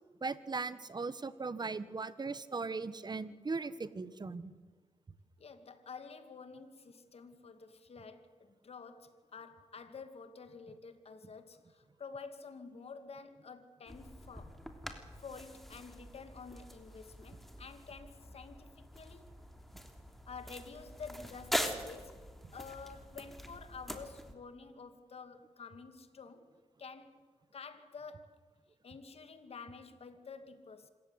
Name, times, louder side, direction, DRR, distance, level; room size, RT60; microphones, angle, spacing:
voice 1, 0.2-4.5, right 4 dB, 35° right, 15 dB, 1.5 m, -38 dB
voice 2, 5.4-14.6 15.2-19.3 20.3-22.2 22.5-26.5 26.8-27.3 27.5-28.3 28.8-30.9, left 5 dB, 60° left, 9 dB, 2.4 m, -50 dB
sound 1, 13.9-24.3, equal, ahead, 3.0 m, -43 dB
26.0 x 15.0 x 9.8 m, 1.4 s
cardioid pair, 75°, 12 cm